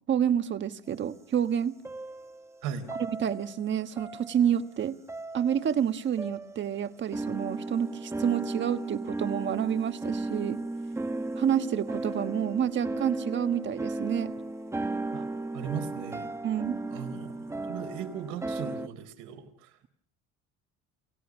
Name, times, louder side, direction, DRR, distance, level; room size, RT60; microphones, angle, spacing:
voice 1, 0.1-1.8 3.2-5.0 5.3-10.6 11.4-14.3 16.4-16.8, right 9 dB, 40° right, 1.4 m, -28 dB
sound 1, 1.8-2.5 2.9-3.7 4.0-4.7 5.1-5.8 6.2-6.7 7.1-18.9, right 2 dB, 10° right, 1.1 m, -35 dB
voice 2, 15.5-16.3 16.9-19.9, right 8 dB, 80° right, 4.2 m, -38 dB
29.0 x 17.0 x 6.2 m
cardioid pair, 120°, 30 cm